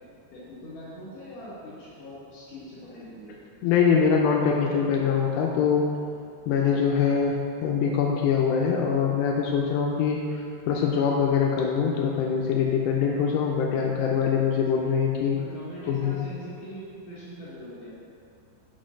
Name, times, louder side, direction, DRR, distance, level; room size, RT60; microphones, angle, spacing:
voice 1, 0.3-3.5 15.3-17.9, equal, 55° left, -13 dB, 2.8 m, -42 dB
voice 2, 3.6-5.9 6.5-7.4 7.6-15.4 15.9-16.2, left 6 dB, 90° left, -1 dB, 2.4 m, -23 dB
6.3 x 6.3 x 6.3 m, 2.5 s
omnidirectional pair, 5.5 m